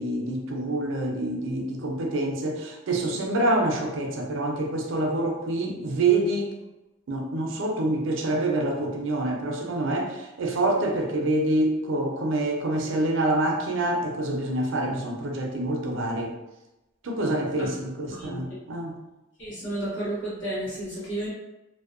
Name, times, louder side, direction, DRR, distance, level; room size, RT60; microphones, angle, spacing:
voice 1, 0.0-6.5 7.1-16.3 17.0-19.0, right 2 dB, 75° right, 1 dB, 0.5 m, -26 dB
voice 2, 18.1-18.4 19.4-21.3, right 1 dB, 70° left, -9 dB, 1.2 m, -32 dB
2.6 x 2.1 x 2.4 m, 0.98 s
head